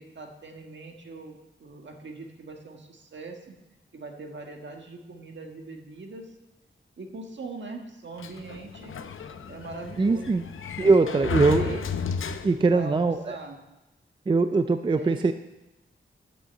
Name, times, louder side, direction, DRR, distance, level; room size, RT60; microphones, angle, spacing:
voice 1, 0.0-3.6 3.9-6.3 7.0-9.0 9.5-10.4 10.8-11.9 12.7-13.6 14.9-15.3, right 3 dB, 65° right, 3 dB, 1.5 m, -41 dB
Sliding door, 8.2-12.9, left 6 dB, 80° left, 0.7 m, -33 dB
voice 2, 10.0-10.4 10.8-11.8 12.4-13.2 14.3-15.3, right 3 dB, 25° right, 10 dB, 0.4 m, -21 dB
11.0 x 6.5 x 8.0 m, 0.99 s
wide cardioid pair, 135°, 21 cm